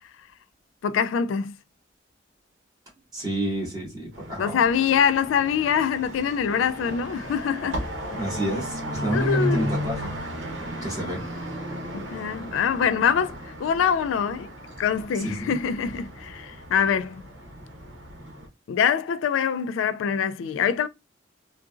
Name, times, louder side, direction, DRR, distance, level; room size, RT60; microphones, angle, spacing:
voice 1, 0.8-1.6 4.4-7.9 9.1-9.7 12.1-14.5 14.8-17.3 18.7-20.9, left 7 dB, 85° left, 0.3 m, -24 dB
voice 2, 3.1-4.6 8.1-10.0 10.8-11.2 15.2-15.6, right 1 dB, 20° right, 1.8 m, -30 dB
sound 1, 4.1-18.5, equal, 80° right, 1.0 m, -34 dB
3.7 x 2.4 x 2.4 m
head